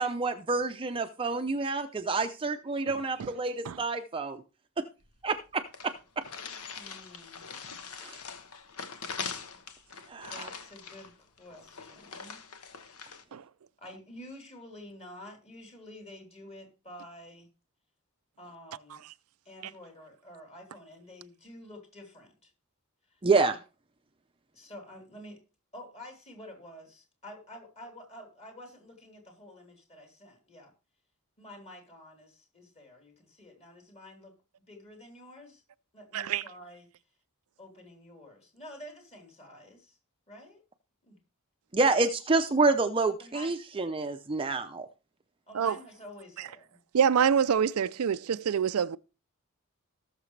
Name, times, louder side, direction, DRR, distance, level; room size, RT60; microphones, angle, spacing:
voice 1, 0.0-4.4 4.8-4.9 5.2-5.9 8.0-8.2 10.1-10.5 23.2-23.5 41.7-44.9, right 3 dB, 25° right, 0.6 m, -28 dB
sound 1, 5.0-5.1 5.3-5.4 5.7-13.2, left 6 dB, 90° left, 1.2 m, -42 dB
voice 2, 6.7-7.5 10.3-12.4 13.8-17.5 18.4-19.0 19.5-22.5 23.1-23.6 24.5-25.4 25.7-30.7 31.4-34.3 34.7-35.6 35.9-36.9 37.6-40.0 40.3-40.6 41.0-41.2 43.2-43.5 45.5-46.8, left 1 dB, 30° left, 3.7 m, -49 dB
voice 3, 36.1-36.4 45.5-45.8 46.9-49.0, right 7 dB, 75° right, 0.4 m, -26 dB
18.5 x 6.7 x 3.3 m
head